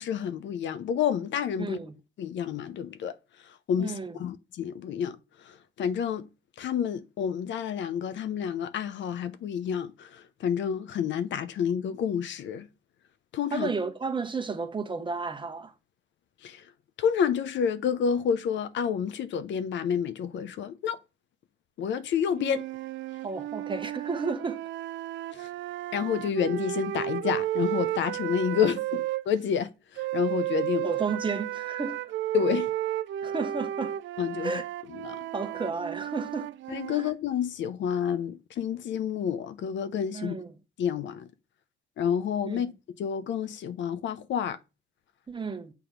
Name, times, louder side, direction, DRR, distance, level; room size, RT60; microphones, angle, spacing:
voice 1, 0.0-1.8 2.2-3.2 3.7-5.2 5.5-6.3 6.6-12.7 13.3-13.7 16.4-16.6 17.0-21.0 21.8-22.6 25.4-25.5 25.9-28.8 29.3-29.7 30.1-30.9 32.3-32.7 34.2-34.6 35.0-35.2 36.7-40.4 40.8-41.3 42.0-42.7 43.0-44.6, left 8 dB, 70° left, 0.6 m, -29 dB
voice 2, 1.6-2.0 3.7-4.2 13.5-15.7 23.2-24.6 28.9-29.0 30.8-32.1 33.2-34.0 34.4-34.7 35.3-36.5 36.9-37.1 40.1-40.5 42.4-42.6 45.3-45.7, right 4 dB, 25° right, 0.9 m, -32 dB
sound 1, 22.3-29.2 30.0-37.1, right 13 dB, 70° right, 0.4 m, -33 dB
7.0 x 3.0 x 5.0 m
cardioid pair, 90°, 20 cm